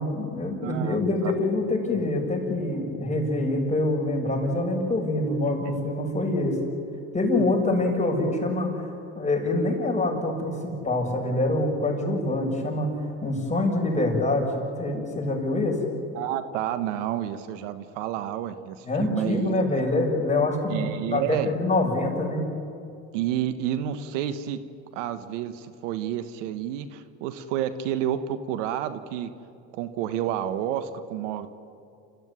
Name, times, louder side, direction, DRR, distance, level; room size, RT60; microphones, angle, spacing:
voice 1, 0.0-6.6 7.1-8.9 9.2-12.9 13.2-14.5 14.8-15.8 18.9-22.5, left 2 dB, 20° left, 0 dB, 7.1 m, -25 dB
voice 2, 0.6-1.0 1.2-1.3 7.4-7.8 16.1-19.8 20.7-21.5 23.1-24.6 24.9-29.3 29.7-31.5, right 11 dB, 90° right, 11 dB, 1.4 m, -30 dB
29.0 x 15.0 x 9.7 m, 2.7 s
supercardioid pair, 90°, 36 cm